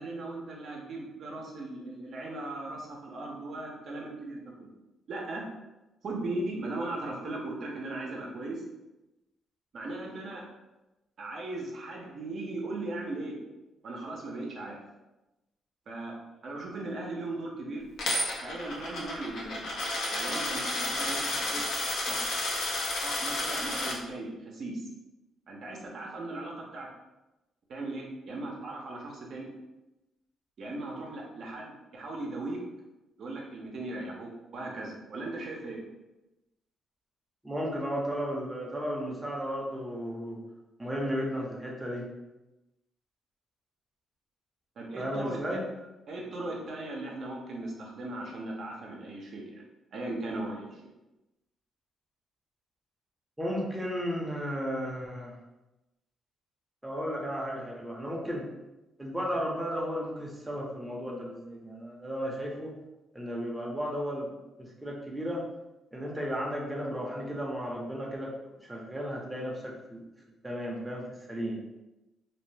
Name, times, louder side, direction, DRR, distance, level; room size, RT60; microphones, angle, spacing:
voice 1, 0.0-4.7 5.1-5.4 6.0-8.6 9.7-10.5 11.2-13.4 13.8-14.8 15.9-16.2 16.4-17.8 18.4-19.6 20.1-21.6 22.0-22.4 23.0-24.8 25.5-26.9 27.7-29.5 30.6-32.6 33.2-35.8 44.8-45.6 46.1-49.5 49.9-50.8, right 2 dB, 60° right, -2 dB, 0.6 m, -38 dB
Coin (dropping), 18.0-23.9, left 1 dB, 75° left, 0.6 m, -31 dB
voice 2, 37.4-40.4 40.8-42.1 45.0-45.6 53.4-55.3 56.8-58.5 59.0-62.7 63.1-64.3 64.6-65.4 65.9-68.3 68.7-70.0 70.4-71.6, equal, 10° right, -3 dB, 0.7 m, -34 dB
2.6 x 2.1 x 3.2 m, 1.0 s
cardioid pair, 90°, 0 cm